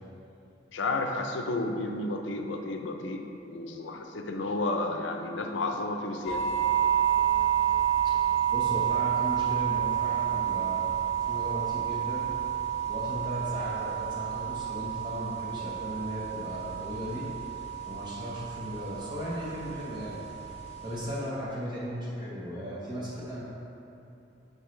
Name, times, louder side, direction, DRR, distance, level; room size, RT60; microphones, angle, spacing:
voice 1, 0.7-6.5, left 2 dB, 75° left, 4 dB, 0.6 m, -32 dB
sound 1, 6.3-21.2, right 10 dB, 35° left, 0.8 m, -30 dB
voice 2, 8.5-10.8 11.2-12.3 12.9-17.3 17.9-20.2 20.8-23.4, equal, 25° right, -7 dB, 1.0 m, -36 dB
8.5 x 5.2 x 3.2 m, 2.8 s
head